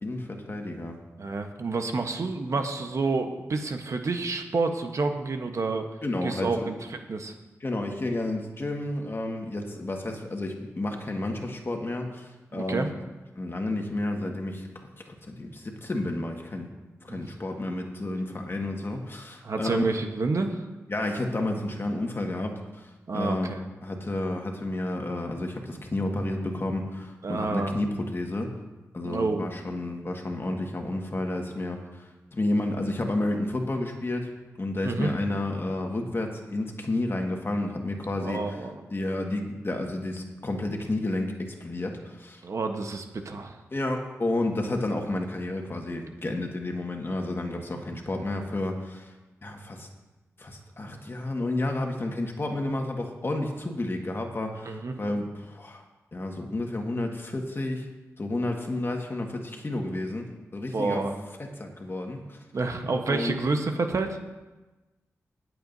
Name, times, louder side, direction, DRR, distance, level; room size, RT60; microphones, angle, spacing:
voice 1, 0.0-1.0 6.0-6.7 7.6-12.9 13.4-14.7 15.3-16.7 17.0-19.8 20.9-23.5 23.8-28.5 28.9-34.3 34.6-38.6 38.9-42.4 43.7-49.1 49.4-49.9 50.4-55.8 56.1-57.9 58.2-61.1 61.4-62.4 63.0-63.4, left 2 dB, 40° left, 2 dB, 1.7 m, -31 dB
voice 2, 1.2-5.9 6.2-7.3 12.5-12.9 17.1-17.2 19.4-20.6 23.1-23.6 27.2-27.8 29.0-29.5 34.8-35.1 38.2-38.8 42.4-43.6 54.6-55.0 59.9-60.0 60.7-61.1 62.5-64.2, right 3 dB, 60° right, 5 dB, 1.1 m, -29 dB
20.0 x 7.8 x 2.7 m, 1.1 s
cardioid pair, 50°, 6 cm